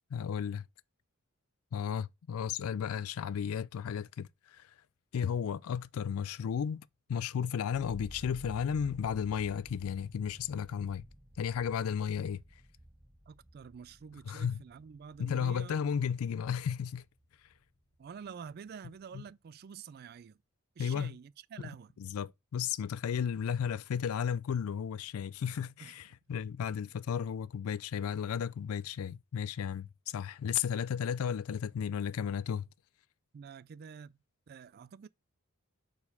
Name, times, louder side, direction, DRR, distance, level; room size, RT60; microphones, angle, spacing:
voice 1, 0.1-0.6 1.7-4.7 5.1-11.1 11.4-12.4 14.3-14.6 15.2-17.0 19.1-19.2 20.8-21.2 22.0-32.7, left 7 dB, 75° left, 0.3 m, -34 dB
sound 1, 7.7-17.7 18.0-18.7, equal, 20° right, 1.0 m, -54 dB
voice 2, 13.3-15.9 18.0-20.4 20.8-22.0 25.8-26.0 33.3-34.2 34.5-35.1, right 6 dB, 45° right, 0.3 m, -48 dB
4.4 x 4.3 x 5.4 m
head